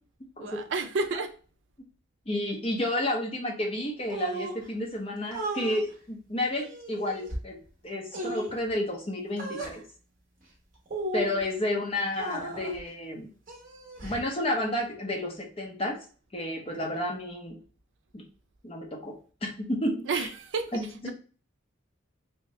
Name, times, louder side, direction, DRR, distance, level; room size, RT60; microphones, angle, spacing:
voice 1, 0.4-1.3 20.0-21.1, right 4 dB, 65° right, 0.4 m, -31 dB
voice 2, 2.3-7.6 7.8-9.8 11.1-13.3 14.0-16.0 16.3-17.6 18.1-18.3 18.6-19.1 19.4-20.3 20.7-21.1, left 1 dB, 30° left, 0.8 m, -31 dB
sound 1, 4.1-4.6 5.3-5.8 6.5-7.4 8.1-8.6 9.4-9.8 10.9-11.5 12.1-12.8 13.5-14.3, right 2 dB, 40° right, 1.1 m, -35 dB
3.1 x 2.7 x 3.1 m
head